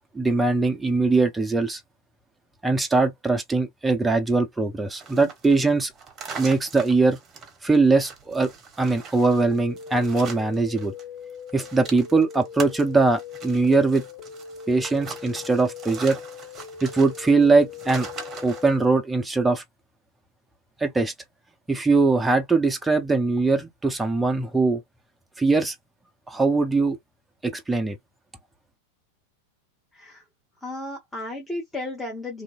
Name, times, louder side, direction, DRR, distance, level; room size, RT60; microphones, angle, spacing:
voice 1, 0.1-1.8 2.6-5.9 6.4-7.2 7.6-8.5 8.8-10.9 11.5-14.0 14.7-16.2 16.8-18.1 18.4-19.6 20.8-21.1 21.7-24.8 25.4-25.7 26.3-27.0 27.4-28.0, right 3 dB, 10° right, 0.6 m, -21 dB
sound 1, 4.9-11.0 11.3-18.7, right 5 dB, 30° right, 0.9 m, -41 dB
sound 2, 9.4-19.0, left 8 dB, 45° left, 1.8 m, -41 dB
voice 2, 30.6-32.4, left 2 dB, 10° left, 1.1 m, -34 dB
2.7 x 2.7 x 2.4 m
figure-of-eight pair, 90°, 0 cm